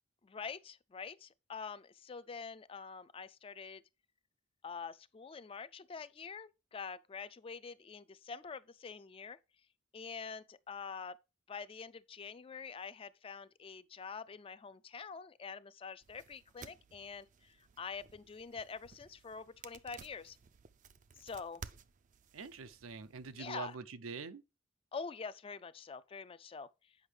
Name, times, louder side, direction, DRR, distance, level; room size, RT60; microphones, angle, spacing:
voice 1, 0.2-3.8 4.6-9.4 9.9-11.2 11.5-20.4 21.2-21.6 23.4-23.8 24.9-26.7, left 5 dB, 25° left, 0.3 m, -46 dB
sound 1, 16.0-23.6, right 6 dB, 40° right, 0.4 m, -56 dB
voice 2, 22.3-24.4, right 5 dB, 85° right, 0.6 m, -45 dB
8.0 x 5.4 x 3.3 m
head